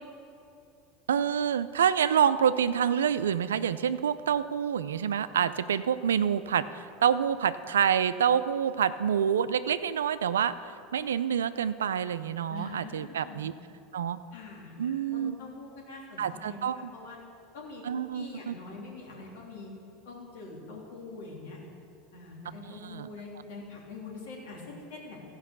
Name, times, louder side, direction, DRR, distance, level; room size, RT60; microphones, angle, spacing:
voice 1, 1.1-13.5 13.9-14.2 14.8-15.4 16.2-16.9 17.8-18.6 22.6-23.1, right 8 dB, 85° right, 14 dB, 0.4 m, -27 dB
voice 2, 12.5-13.4 14.3-17.2 17.5-17.8 18.1-19.7 20.0-21.6 22.1-25.2, left 3 dB, 75° left, -3 dB, 3.0 m, -44 dB
14.5 x 5.4 x 6.7 m, 2.7 s
hypercardioid pair, 90°, 0 cm